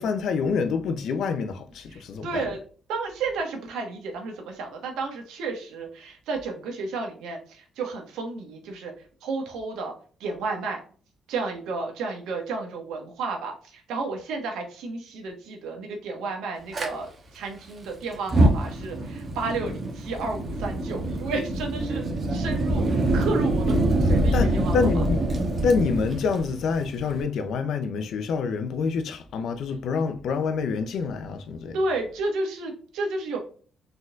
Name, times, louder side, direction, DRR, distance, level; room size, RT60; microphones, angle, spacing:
voice 1, 0.0-2.4 24.3-25.2 25.6-31.8, left 5 dB, 75° left, 0.6 m, -27 dB
voice 2, 1.9-2.6 2.9-8.9 9.2-9.9 10.2-10.8 11.3-24.8 31.7-33.4, right 3 dB, 90° right, 1.3 m, -32 dB
Fire, 16.7-16.9 18.1-27.2, right 1 dB, 40° right, 1.2 m, -25 dB
4.1 x 3.8 x 2.4 m
cardioid pair, 90°, 0 cm